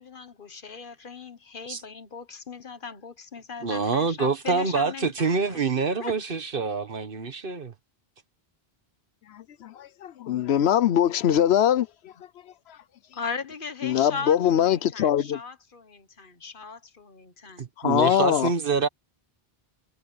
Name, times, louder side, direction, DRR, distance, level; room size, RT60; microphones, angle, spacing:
voice 1, 0.0-5.6 6.0-6.2 13.1-17.7, left 5 dB, 55° left, 1.4 m, -38 dB
voice 2, 3.6-7.7 17.6-18.9, right 4 dB, 60° right, 1.4 m, -26 dB
voice 3, 9.3-12.1 13.8-15.4 17.8-18.5, left 10 dB, 85° left, 0.9 m, -22 dB
omnidirectional pair, 1.0 m